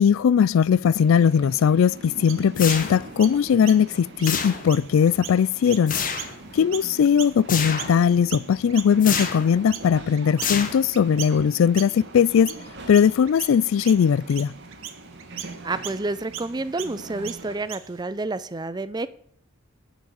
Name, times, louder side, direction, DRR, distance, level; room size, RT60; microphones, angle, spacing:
voice 1, 0.0-6.0 6.5-12.5 12.9-14.5, left 7 dB, 80° left, 0.3 m, -19 dB
sound 1, 0.9-17.6, right 2 dB, 55° right, 1.5 m, -43 dB
Chirp tweet, 2.3-8.0 8.3-18.0, right 10 dB, 80° right, 1.0 m, -39 dB
sound 2, 2.5-3.2 4.2-4.9 5.9-6.4 7.5-8.0 9.0-9.5 10.4-11.1, left 6 dB, 45° left, 1.4 m, -28 dB
voice 2, 15.6-19.1, right 2 dB, 20° right, 0.5 m, -29 dB
10.5 x 6.0 x 7.0 m
head